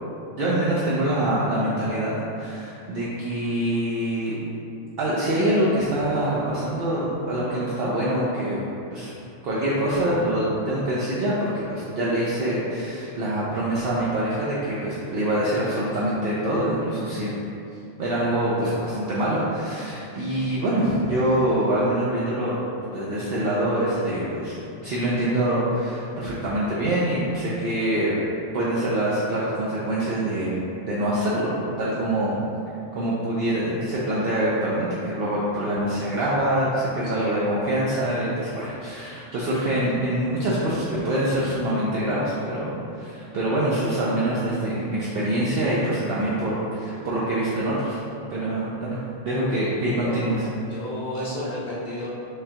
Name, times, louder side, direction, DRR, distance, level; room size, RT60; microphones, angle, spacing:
voice 1, 0.4-4.4 5.0-8.6 8.9-9.1 9.4-17.3 18.0-24.6 24.8-28.2 28.5-32.3 32.9-48.0 48.3-49.0 49.2-50.5, right 1 dB, 60° right, -7 dB, 0.7 m, -25 dB
voice 2, 37.1-37.5 50.0-50.3 50.7-52.1, left 1 dB, 60° left, -6 dB, 0.5 m, -32 dB
4.9 x 2.2 x 2.8 m, 2.7 s
omnidirectional pair, 1.3 m